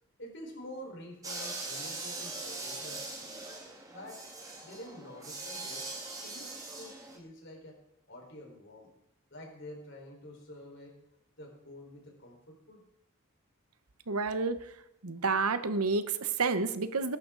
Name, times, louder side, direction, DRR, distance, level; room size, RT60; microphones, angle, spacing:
voice 1, 0.2-3.5 3.9-4.2 4.6-5.9 6.2-7.8 8.1-8.9 9.3-11.0 11.4-12.8, left 1 dB, 55° left, 0 dB, 4.6 m, -48 dB
sound 1, 1.2-7.2, right 3 dB, 15° right, 1.9 m, -41 dB
voice 2, 14.1-14.7 15.0-17.2, right 4 dB, 85° right, 11 dB, 1.0 m, -30 dB
21.0 x 11.5 x 3.9 m, 0.80 s
head